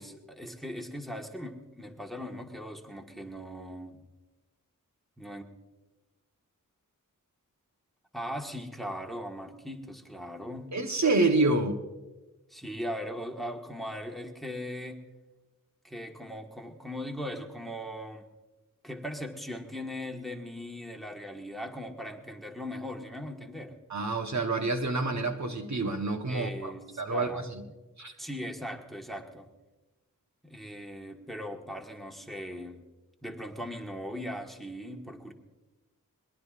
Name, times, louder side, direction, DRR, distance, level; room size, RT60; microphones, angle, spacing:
voice 1, 0.0-4.0 5.2-5.5 8.1-10.7 12.5-15.0 15.8-18.2 18.8-23.8 26.3-27.5 28.2-29.5 30.4-32.8 33.2-35.3, equal, ahead, 2 dB, 1.5 m, -39 dB
voice 2, 10.7-11.8 23.9-26.7 27.0-27.6 28.0-28.1, right 3 dB, 55° right, 5 dB, 1.1 m, -28 dB
22.0 x 20.0 x 2.5 m, 1.2 s
wide cardioid pair, 75°, 33 cm